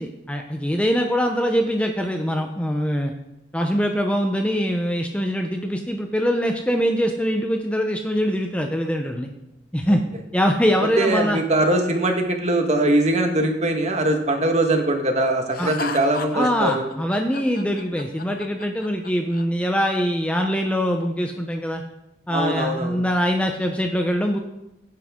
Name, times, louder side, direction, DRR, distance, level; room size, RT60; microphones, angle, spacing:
voice 1, 0.0-3.1 3.5-9.3 9.7-10.0 10.3-11.4 15.6-15.7 16.3-21.8 22.3-24.4, equal, 5° left, 3 dB, 0.7 m, -23 dB
voice 2, 11.0-16.8 22.3-23.0, right 1 dB, 35° right, 4 dB, 1.6 m, -21 dB
Laughter, 15.5-19.4, left 5 dB, 50° left, 0.7 m, -35 dB
16.0 x 9.4 x 3.7 m, 0.88 s
head